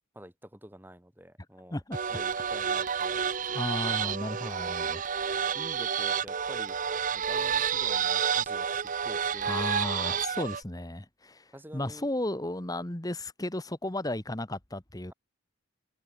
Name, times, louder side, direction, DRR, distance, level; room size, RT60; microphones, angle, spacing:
voice 1, 0.1-1.8 2.1-4.7 5.5-6.8 7.1-9.6 11.5-12.1, equal, 10° right, 6.5 m, -48 dB
sound 1, 1.9-10.6, right 7 dB, 40° right, 0.6 m, -30 dB
voice 2, 3.5-5.0 9.4-15.1, left 1 dB, 20° left, 1.4 m, -34 dB
head